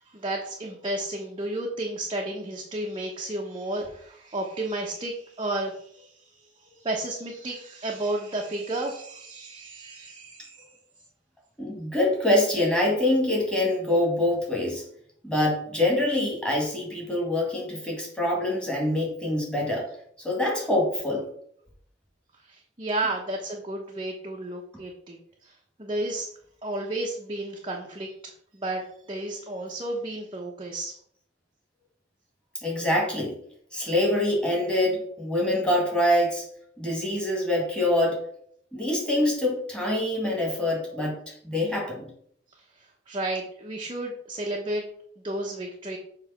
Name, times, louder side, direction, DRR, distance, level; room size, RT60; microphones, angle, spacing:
voice 1, 0.1-10.6 22.4-25.2 25.4-25.5 25.8-26.3 26.6-31.0 42.5-46.0, right 1 dB, 30° right, -1 dB, 0.9 m, -32 dB
voice 2, 11.6-14.8 15.2-19.9 20.2-21.2 32.6-33.4 33.7-36.4 36.8-38.2 38.7-41.2 41.4-42.1, left 1 dB, 5° left, -3 dB, 2.2 m, -25 dB
7.1 x 3.3 x 5.8 m, 0.64 s
head